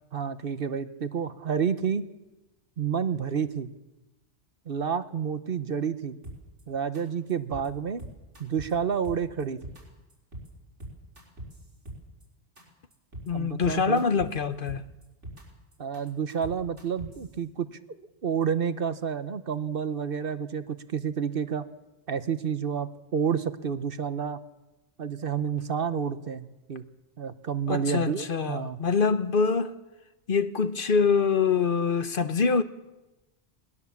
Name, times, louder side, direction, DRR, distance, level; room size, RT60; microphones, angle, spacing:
voice 1, 0.1-2.1 2.8-3.7 4.7-6.2 6.7-8.0 8.4-9.6 13.3-14.0 15.8-17.7 18.2-21.6 22.1-24.4 25.0-26.8 27.2-28.8, right 7 dB, 55° right, 1.1 m, -29 dB
sound 1, 6.2-6.6 6.9-7.0 7.3-7.7 8.0-8.7 9.0-9.8 10.1-10.5 10.8-12.2 12.6-12.7 12.9-13.3 13.6-14.3 14.7-15.4 15.7-17.3, right 1 dB, 85° right, 5.2 m, -42 dB
voice 2, 13.3-14.8 27.7-29.8 30.3-32.6, left 5 dB, 50° left, 1.0 m, -25 dB
20.5 x 20.0 x 7.2 m
omnidirectional pair, 1.2 m